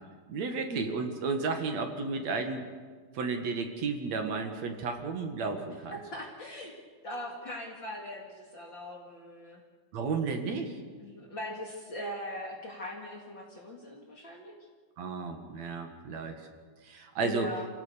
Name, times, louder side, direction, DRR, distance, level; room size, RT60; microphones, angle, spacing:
voice 1, 0.3-2.6 3.1-6.0 9.9-10.7 15.0-16.4 16.8-17.5, right 4 dB, 55° right, 5 dB, 2.6 m, -33 dB
voice 2, 5.9-6.7 7.0-9.6 11.0-14.6 17.2-17.7, equal, 35° left, 0 dB, 2.4 m, -40 dB
28.0 x 17.0 x 6.9 m, 1.5 s
omnidirectional pair, 4.4 m